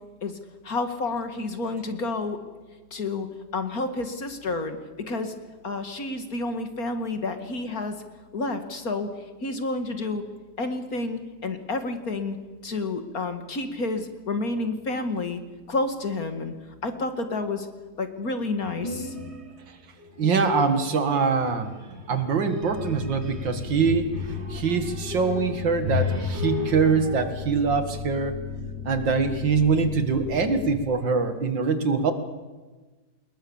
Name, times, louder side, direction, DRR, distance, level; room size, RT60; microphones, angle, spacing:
voice 1, 0.6-2.4 2.9-3.3 3.5-4.8 5.1-5.3 5.6-8.0 8.3-9.1 9.4-10.2 10.6-12.4 12.6-15.4 15.7-16.5 16.8-17.7 18.0-19.1, left 3 dB, 50° left, 7 dB, 2.5 m, -29 dB
sound 1, 18.6-19.6 20.0-20.6 21.3-27.3, left 4 dB, 35° right, 2.6 m, -34 dB
voice 2, 20.2-21.7 22.1-28.4 28.8-32.1, right 5 dB, 90° right, 9 dB, 2.7 m, -24 dB
sound 2, 22.6-30.8, left 7 dB, 70° left, 6.3 m, -36 dB
27.5 x 21.0 x 7.3 m, 1.3 s
omnidirectional pair, 1.9 m